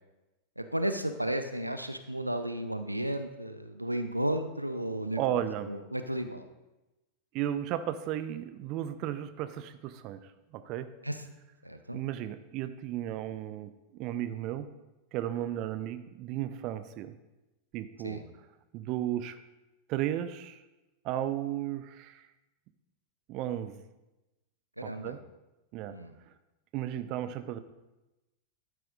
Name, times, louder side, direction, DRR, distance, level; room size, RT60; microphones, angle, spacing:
voice 1, 0.6-5.4 5.7-6.5 11.0-11.2 11.6-12.0 18.0-18.2 24.8-25.2 25.9-26.1, right 1 dB, 85° right, 9 dB, 0.5 m, -33 dB
voice 2, 5.1-5.7 7.3-10.9 11.9-14.7 15.1-17.1 17.7-18.2 18.7-19.4 19.9-20.6 21.0-22.3 23.3-23.8 24.8-25.2 25.7-26.0 26.3-26.4 26.7-27.6, right 12 dB, 40° right, 12 dB, 0.5 m, -34 dB
12.0 x 9.1 x 2.5 m, 1.0 s
figure-of-eight pair, 90°, 0 cm